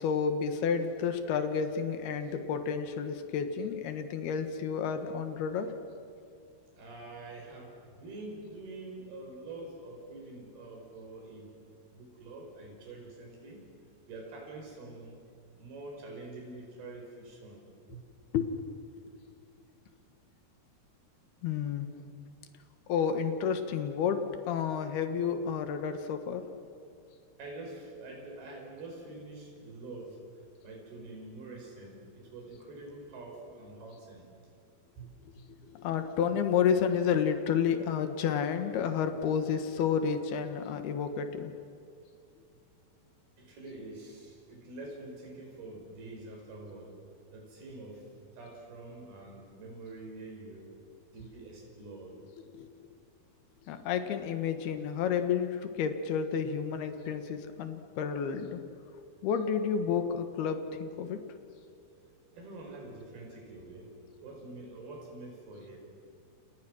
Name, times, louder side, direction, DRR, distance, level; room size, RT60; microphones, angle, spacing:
voice 1, 0.0-5.7 18.3-18.5 21.4-21.9 22.9-26.5 35.6-41.5 52.5-52.7 53.7-58.6 59.2-61.2, left 7 dB, 85° left, 7 dB, 3.5 m, -30 dB
voice 2, 6.8-11.6 11.9-13.6 14.1-15.3 15.6-17.6 17.9-18.1 27.4-30.2 30.6-34.3 35.0-35.5 43.4-46.9 47.3-50.7 51.1-52.2 62.3-63.9 64.2-65.8, right 2 dB, 85° right, 0 dB, 7.0 m, -46 dB
29.5 x 29.0 x 6.3 m, 2.5 s
omnidirectional pair, 4.4 m